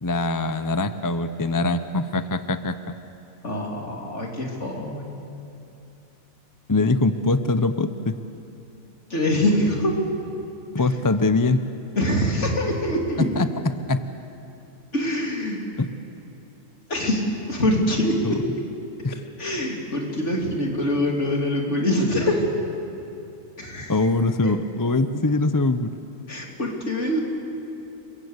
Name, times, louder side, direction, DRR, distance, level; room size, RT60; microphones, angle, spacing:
voice 1, 0.0-3.0 6.7-8.2 10.7-11.6 13.2-13.5 13.9-14.0 15.8-15.9 18.2-18.4 19.0-19.2 23.9-25.9, left 2 dB, 20° left, 11 dB, 0.6 m, -23 dB
voice 2, 3.4-5.1 9.1-9.9 10.8-10.9 12.0-13.3 14.9-15.6 16.9-18.4 19.4-22.4 23.6-23.9 24.4-24.5 26.3-27.2, left 1 dB, 55° left, 0 dB, 3.7 m, -24 dB
29.5 x 22.5 x 8.2 m, 2.7 s
omnidirectional pair, 1.4 m